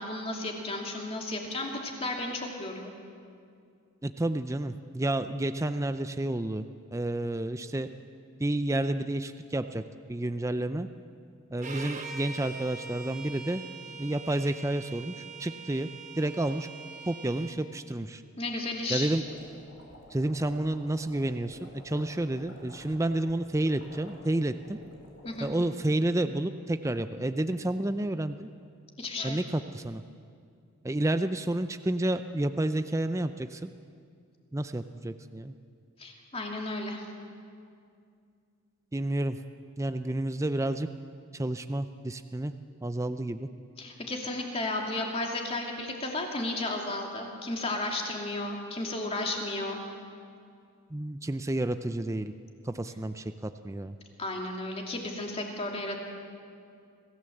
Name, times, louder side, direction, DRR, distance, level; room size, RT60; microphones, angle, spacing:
voice 1, 0.0-2.9 18.4-19.1 25.2-25.5 29.0-29.4 36.0-37.0 43.8-49.8 54.2-56.0, left 2 dB, 25° left, 1 dB, 2.6 m, -33 dB
voice 2, 4.0-6.6 6.9-7.9 8.4-9.8 10.1-10.9 11.5-13.6 14.0-15.9 16.2-16.7 17.1-18.2 18.9-19.2 20.1-24.8 25.4-28.5 29.2-30.0 30.8-33.7 34.5-35.5 38.9-39.4 39.8-40.9 41.3-42.5 42.8-43.5 50.9-52.3 52.6-54.0, right 1 dB, 15° right, 10 dB, 0.5 m, -30 dB
Bowed string instrument, 11.6-17.6, right 4 dB, 35° right, 1.3 m, -43 dB
sound 1, 18.8-25.7, left 1 dB, 65° left, 5.0 m, -52 dB
26.0 x 16.0 x 7.9 m, 2.3 s
head